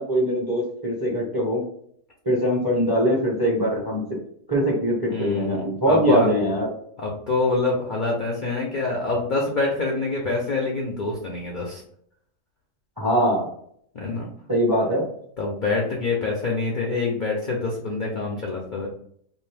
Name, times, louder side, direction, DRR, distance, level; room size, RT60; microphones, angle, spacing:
voice 1, 0.0-1.6 2.2-4.0 4.5-6.7 13.0-13.5 14.5-15.0, equal, 20° right, -4 dB, 0.6 m, -22 dB
voice 2, 5.1-6.3 7.0-11.8 13.9-14.3 14.9-15.1 15.4-18.9, left 3 dB, 55° left, -2 dB, 0.5 m, -26 dB
2.7 x 2.6 x 3.3 m, 0.66 s
omnidirectional pair, 1.6 m